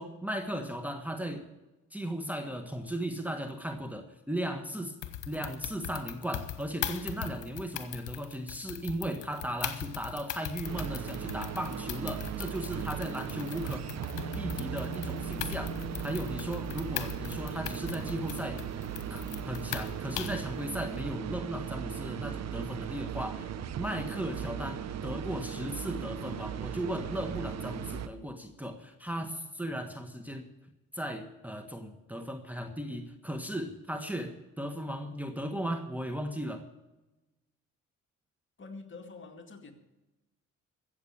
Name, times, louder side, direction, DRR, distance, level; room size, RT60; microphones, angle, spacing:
voice 1, 0.0-1.4 1.9-4.9 5.3-13.9 14.4-15.8 16.0-18.6 19.1-23.5 23.8-30.4 30.9-36.6, equal, 5° right, 5 dB, 1.5 m, -36 dB
sound 1, 5.0-20.5, left 12 dB, 80° left, 1.3 m, -40 dB
sound 2, 10.6-28.1, right 8 dB, 60° right, 1.0 m, -37 dB
sound 3, 14.1-20.8, right 2 dB, 20° left, 0.7 m, -45 dB
voice 2, 38.6-39.7, left 3 dB, 40° left, 4 dB, 2.2 m, -46 dB
14.5 x 8.1 x 8.6 m, 1.0 s
cardioid pair, 90°, 30 cm